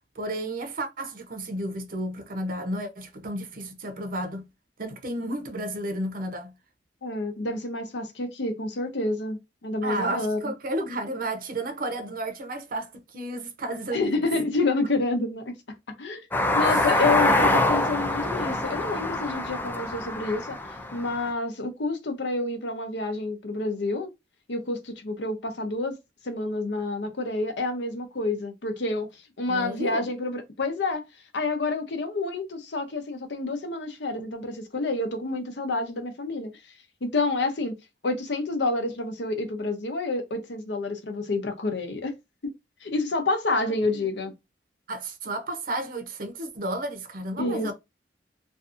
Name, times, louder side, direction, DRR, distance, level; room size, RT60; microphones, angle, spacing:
voice 1, 0.2-4.4 4.8-6.5 9.8-14.2 16.7-16.8 17.2-17.4 29.5-30.1 43.7-44.1 44.9-47.7, right 1 dB, 50° right, 0.6 m, -32 dB
voice 2, 7.0-10.5 13.9-15.5 16.0-16.2 16.5-20.6 20.9-24.1 24.5-25.9 26.3-29.1 29.4-31.0 31.3-36.5 37.0-37.8 38.0-42.1 42.8-44.3 47.4-47.7, left 2 dB, 70° left, 0.7 m, -28 dB
sound 1, 16.3-21.3, left 2 dB, 10° left, 0.3 m, -25 dB
2.6 x 2.3 x 2.5 m
head